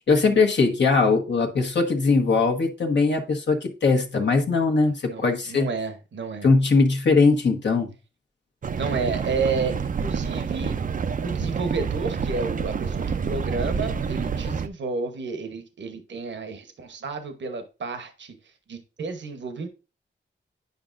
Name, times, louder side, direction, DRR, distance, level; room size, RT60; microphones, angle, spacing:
voice 1, 0.1-5.7 6.4-7.9, left 4 dB, 65° left, 1 dB, 1.2 m, -20 dB
voice 2, 5.0-6.5 8.8-10.8 11.2-19.7, right 4 dB, 65° right, 8 dB, 1.0 m, -31 dB
sound 1, 8.6-14.7, right 6 dB, 45° right, 0.5 m, -28 dB
9.4 x 5.2 x 2.5 m, 0.31 s
cardioid pair, 65°, 20 cm